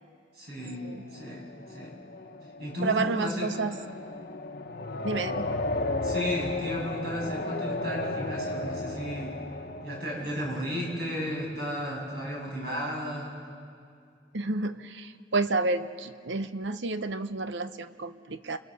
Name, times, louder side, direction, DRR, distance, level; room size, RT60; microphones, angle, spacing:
voice 1, 0.3-0.8 1.1-1.9 2.6-3.5 6.0-9.3 9.8-13.3, equal, 60° right, -2 dB, 7.6 m, -34 dB
sound 1, 0.6-11.5, left 2 dB, 60° left, 1.1 m, -35 dB
voice 2, 2.8-3.8 5.0-5.5 14.3-18.6, right 3 dB, 80° right, 11 dB, 0.9 m, -30 dB
29.5 x 21.5 x 6.9 m, 2.2 s
head